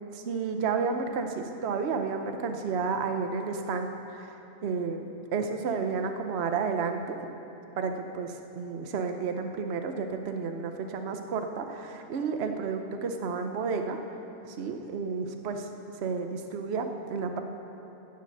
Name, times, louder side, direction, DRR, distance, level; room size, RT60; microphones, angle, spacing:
voice 1, 0.1-7.3 7.8-14.0 14.4-15.7 16.0-17.4, right 5 dB, 55° right, 6 dB, 1.0 m, -31 dB
15.5 x 6.7 x 6.7 m, 3.0 s
omnidirectional pair, 1.4 m